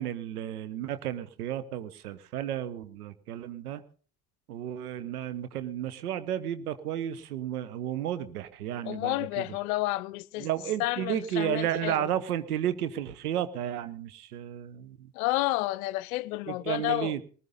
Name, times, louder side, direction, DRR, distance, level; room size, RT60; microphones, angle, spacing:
voice 1, 0.0-3.8 4.5-9.4 10.4-15.1 16.5-17.2, right 11 dB, 75° right, 0.9 m, -33 dB
voice 2, 8.8-10.5 10.8-12.1 15.1-17.1, left 18 dB, 70° left, 0.6 m, -30 dB
19.5 x 13.0 x 3.9 m
figure-of-eight pair, 45°, 45 cm